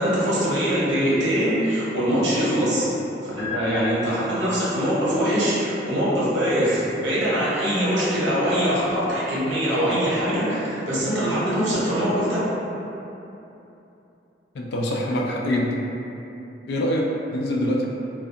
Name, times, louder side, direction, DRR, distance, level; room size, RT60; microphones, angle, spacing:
voice 1, 0.0-2.9 3.2-12.4, equal, 80° right, -9 dB, 0.8 m, -23 dB
sound 1, 3.4-4.7, left 4 dB, 15° left, 0.6 m, -35 dB
voice 2, 14.5-15.7 16.7-17.9, left 1 dB, 60° left, -1 dB, 0.3 m, -24 dB
2.6 x 2.3 x 2.4 m, 2.9 s
head